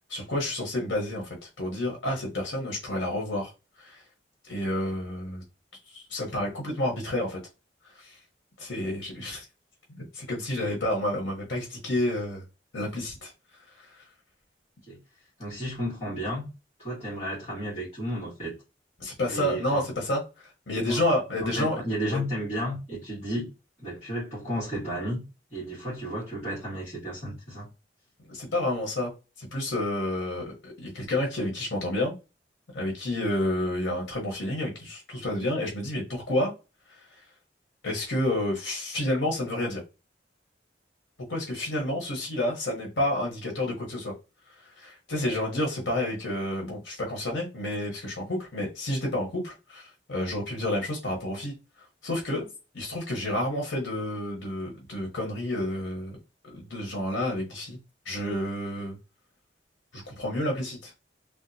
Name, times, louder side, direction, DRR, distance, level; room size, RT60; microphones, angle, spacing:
voice 1, 0.1-3.5 3.8-4.0 4.5-5.4 5.9-7.4 7.9-8.2 8.6-9.4 9.9-12.4 12.7-14.0 19.0-21.8 22.1-22.2 28.3-29.1 29.4-32.1 32.7-36.5 36.9-37.2 37.8-39.8 41.3-44.1 44.5-51.5 52.0-52.5 52.7-56.2 56.4-57.8 58.0-59.0 59.9-60.9, left 1 dB, 75° left, 1.1 m, -30 dB
voice 2, 15.4-16.5 16.8-18.5 19.3-19.9 20.8-21.0 21.4-23.5 23.8-25.2 25.5-27.7, equal, 35° left, 1.8 m, -33 dB
3.5 x 2.3 x 2.7 m
head